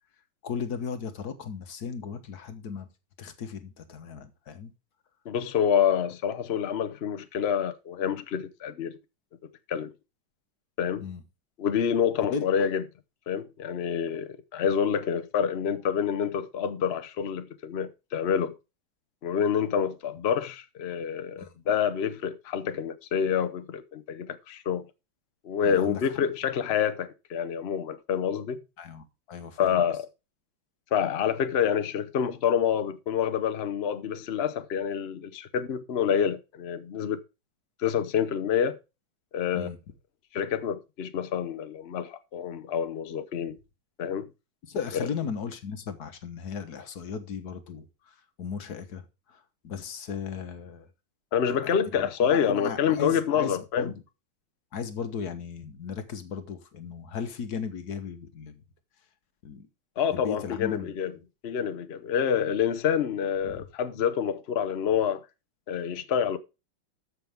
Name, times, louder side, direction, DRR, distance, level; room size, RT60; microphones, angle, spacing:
voice 1, 0.4-2.9 3.2-4.7 11.0-11.2 12.3-12.4 21.4-21.5 25.6-26.0 28.8-29.9 39.5-39.8 44.6-50.9 51.5-51.6 51.9-54.0 54.7-58.6 59.4-59.7 60.1-60.9 63.4-63.7, left 6 dB, 50° left, 1.5 m, -36 dB
voice 2, 5.3-9.0 9.7-9.9 10.8-11.0 11.6-12.8 13.3-18.5 19.2-24.8 25.4-28.6 29.6-30.1 30.9-37.2 37.8-38.8 39.3-39.7 40.3-43.6 44.0-44.3 44.9-45.1 51.3-53.9 60.0-61.1 61.4-65.2 65.7-66.4, left 8 dB, 80° left, 0.5 m, -27 dB
13.0 x 6.6 x 3.5 m
omnidirectional pair, 2.4 m